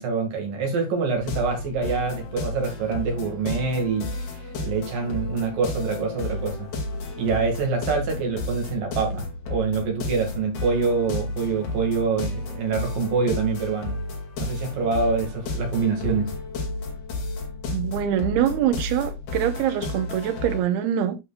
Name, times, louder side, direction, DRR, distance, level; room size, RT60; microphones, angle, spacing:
voice 1, 0.0-6.7 7.2-14.0 14.4-16.4, right 4 dB, 60° right, 3.6 m, -26 dB
sound 1, 1.3-20.6, left 2 dB, 75° left, 4.4 m, -32 dB
voice 2, 17.7-21.2, right 10 dB, 80° right, 2.9 m, -24 dB
11.5 x 6.2 x 2.4 m
omnidirectional pair, 4.5 m